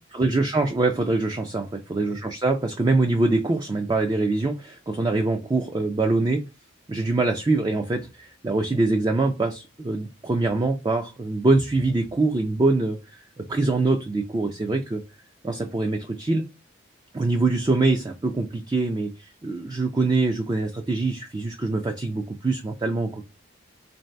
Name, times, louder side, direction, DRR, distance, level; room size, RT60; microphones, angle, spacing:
voice 1, 0.1-6.4 6.9-13.0 13.4-15.0 15.4-16.5 17.1-23.2, right 3 dB, 20° right, 4 dB, 0.4 m, -24 dB
3.8 x 2.7 x 3.2 m, 0.26 s
head